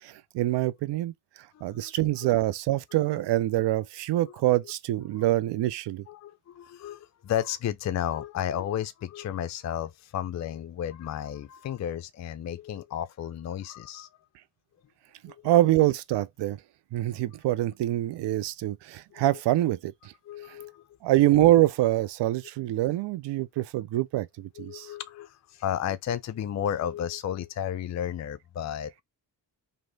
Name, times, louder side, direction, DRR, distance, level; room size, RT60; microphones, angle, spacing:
voice 1, 0.0-6.0 15.2-16.6 16.9-20.1 20.5-20.6 21.0-24.9, right 15 dB, 60° right, 0.6 m, -25 dB
voice 2, 1.5-1.9 3.1-3.2 5.2-5.3 6.1-14.1 15.3-15.4 17.1-17.2 19.1-19.3 20.3-20.8 24.6-29.0, left 10 dB, 35° left, 0.5 m, -33 dB
3.0 x 2.8 x 2.6 m
hypercardioid pair, 45°, 48 cm